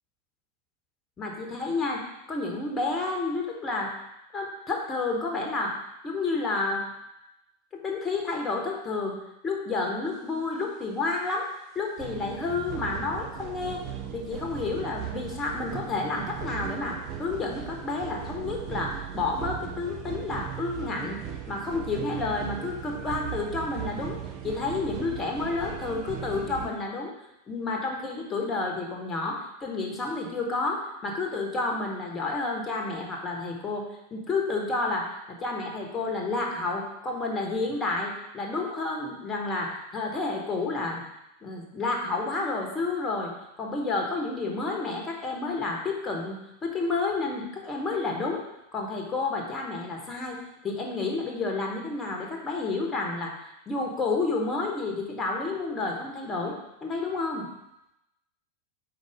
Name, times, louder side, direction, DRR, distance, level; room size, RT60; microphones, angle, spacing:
voice 1, 1.2-2.0 2.3-3.9 4.3-5.8 6.0-6.8 7.7-9.2 9.4-11.5 11.7-13.8 14.1-21.2 21.5-24.2 24.4-27.1 27.5-33.8 34.1-41.0 41.4-43.3 43.6-48.4 48.7-53.3 53.7-56.5 56.8-57.5, left 3 dB, 20° left, 0 dB, 1.2 m, -30 dB
sound 1, 12.0-26.7, right 9 dB, 40° right, 0.6 m, -37 dB
4.7 x 4.1 x 4.8 m, 0.88 s
figure-of-eight pair, 90°, 0 cm